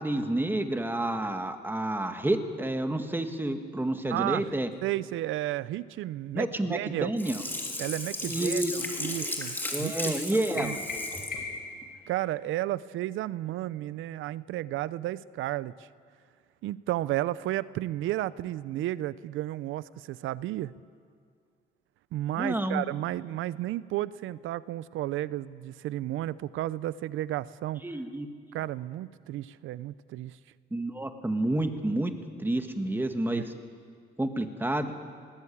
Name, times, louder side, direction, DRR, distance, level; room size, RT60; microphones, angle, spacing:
voice 1, 0.0-4.7 6.3-7.4 8.2-8.7 9.7-10.8 22.4-22.8 27.8-28.3 30.7-32.1 32.4-33.5 34.2-34.9, right 1 dB, 10° right, 7 dB, 1.7 m, -29 dB
voice 2, 4.1-4.6 4.8-7.1 7.8-10.1 10.5-10.8 12.1-15.9 16.6-20.7 22.1-27.8 28.5-30.4 33.3-33.4, right 14 dB, 85° right, 18 dB, 0.5 m, -33 dB
Sink (filling or washing), 7.2-11.4 11.8-11.9, left 1 dB, 10° left, 3.1 m, -35 dB
sound 1, 10.6-11.8, left 3 dB, 50° left, 4.2 m, -36 dB
20.5 x 15.5 x 8.6 m, 2.2 s
cardioid pair, 90°, 20 cm